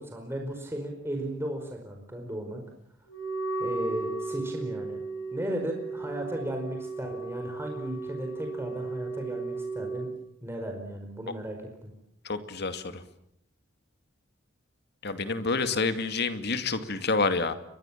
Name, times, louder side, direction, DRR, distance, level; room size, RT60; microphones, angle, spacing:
voice 1, 0.0-2.6 3.6-5.0 5.3-10.1 10.4-11.9, right 1 dB, 10° right, 2 dB, 5.0 m, -35 dB
Wind instrument woodwind instrument, 3.1-10.1, right 3 dB, 75° left, 7.3 m, -35 dB
voice 2, 12.2-13.0 15.0-17.5, left 3 dB, 60° left, 9 dB, 2.5 m, -28 dB
30.0 x 23.5 x 7.5 m, 0.72 s
head